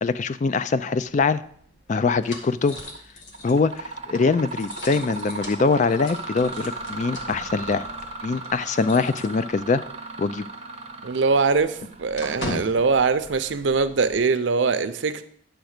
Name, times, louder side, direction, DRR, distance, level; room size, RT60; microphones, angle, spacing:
voice 1, 0.0-1.4 1.9-2.8 3.4-7.8 8.2-9.8 10.2-10.5, left 4 dB, 40° left, 14 dB, 0.3 m, -23 dB
sound 1, 1.2-9.9 10.2-10.4 10.7-14.2, left 2 dB, 80° left, 1.5 m, -40 dB
Mechanisms, 2.6-3.0 3.3-13.9, right 3 dB, 35° right, 0.9 m, -37 dB
voice 2, 11.0-15.2, right 4 dB, 80° right, 11 dB, 0.6 m, -22 dB
10.0 x 3.4 x 6.5 m, 0.63 s
head